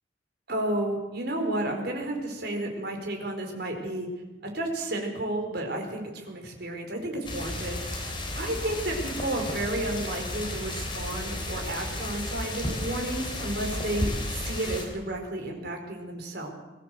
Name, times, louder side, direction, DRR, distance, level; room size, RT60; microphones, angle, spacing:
voice 1, 0.5-4.1 4.5-16.5, right 1 dB, 55° right, 2 dB, 4.5 m, -32 dB
sound 1, 7.2-14.8, left 1 dB, 25° left, 3.9 m, -33 dB
22.0 x 15.5 x 7.8 m, 1.1 s
head